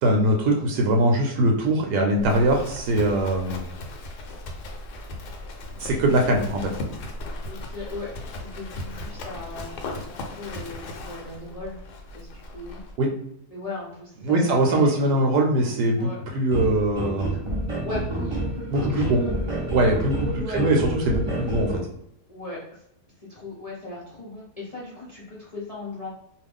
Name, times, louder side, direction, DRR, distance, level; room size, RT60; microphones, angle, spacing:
voice 1, 0.0-3.7 5.8-6.7 13.0-13.1 14.2-17.4 18.7-19.2 19.7-21.7, right 1 dB, 80° right, 1 dB, 1.1 m, -22 dB
Livestock farm animals working animals, 2.2-13.0, left 1 dB, 85° left, 1.2 m, -37 dB
voice 2, 6.3-6.7 7.5-8.1 8.4-11.8 12.1-12.8 13.5-15.3 15.9-16.2 17.3-17.4 17.8-19.3 20.3-20.6 22.3-22.8 23.2-26.1, left 2 dB, 40° left, -7 dB, 0.5 m, -37 dB
sound 1, 16.5-21.8, right 1 dB, 35° right, 0.5 m, -29 dB
2.7 x 2.4 x 3.4 m, 0.76 s
omnidirectional pair, 1.7 m